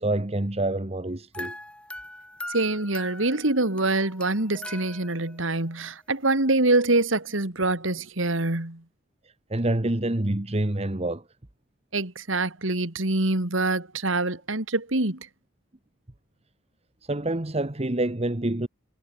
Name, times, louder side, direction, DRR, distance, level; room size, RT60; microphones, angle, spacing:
voice 1, 0.0-1.5 9.2-11.2 17.0-18.7, right 1 dB, 30° right, 1.3 m, -27 dB
sound 1, 1.3-5.4, left 1 dB, 5° left, 5.5 m, -41 dB
voice 2, 2.5-8.8 11.9-15.2, right 2 dB, 75° right, 2.8 m, -25 dB
head